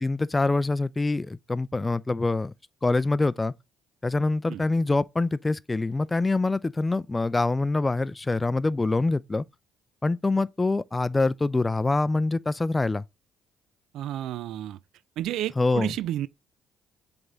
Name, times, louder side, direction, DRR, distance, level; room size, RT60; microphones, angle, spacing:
voice 1, 0.0-2.5 2.8-3.5 4.0-9.4 10.0-13.0 15.6-15.9, left 3 dB, 20° left, 0.5 m, -25 dB
voice 2, 13.9-14.8 15.2-16.3, right 12 dB, 70° right, 0.3 m, -31 dB
7.8 x 3.6 x 4.0 m
hypercardioid pair, 55°, 0 cm